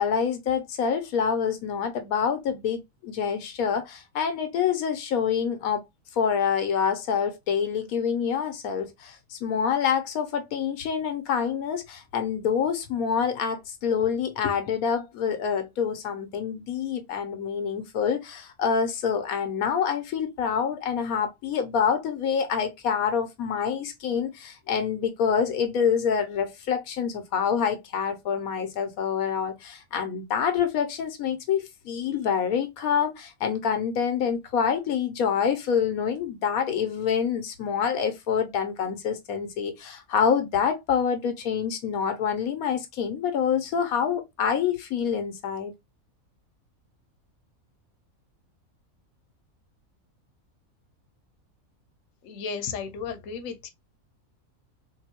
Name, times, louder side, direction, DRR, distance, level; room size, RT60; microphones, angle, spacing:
voice 1, 0.0-5.8 6.1-45.7, left 7 dB, 85° left, 1.1 m, -26 dB
voice 2, 52.2-53.7, left 6 dB, 70° left, 1.0 m, -34 dB
3.6 x 2.6 x 2.8 m
omnidirectional pair, 1.5 m